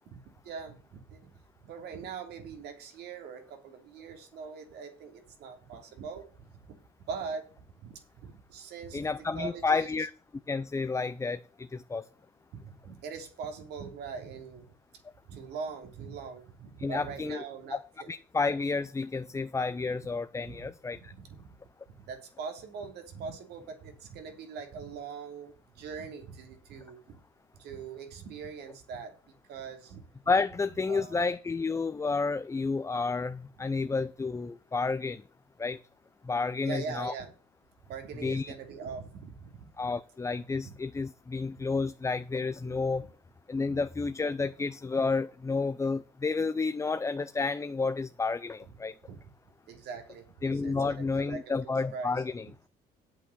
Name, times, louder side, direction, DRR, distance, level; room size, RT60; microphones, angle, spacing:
voice 1, 0.1-1.3 1.6-6.7 7.1-7.5 7.8-9.9 12.5-14.7 15.2-18.1 20.0-20.1 20.4-20.6 20.9-21.5 22.0-27.2 27.6-30.0 30.9-31.2 33.8-33.9 36.6-37.3 37.9-39.7 41.6-41.7 43.0-43.1 49.0-49.2 49.7-50.2 50.5-51.4 51.9-52.2, right 5 dB, 75° right, 3.2 m, -42 dB
voice 2, 8.9-10.1 10.5-12.1 16.8-17.4 17.7-17.8 18.1-21.1 30.3-35.2 35.6-35.8 36.2-37.1 38.2-38.5 39.8-43.0 43.5-48.9 50.4-52.5, left 4 dB, 15° left, 0.6 m, -30 dB
8.8 x 8.3 x 5.7 m
cardioid pair, 110°, 17 cm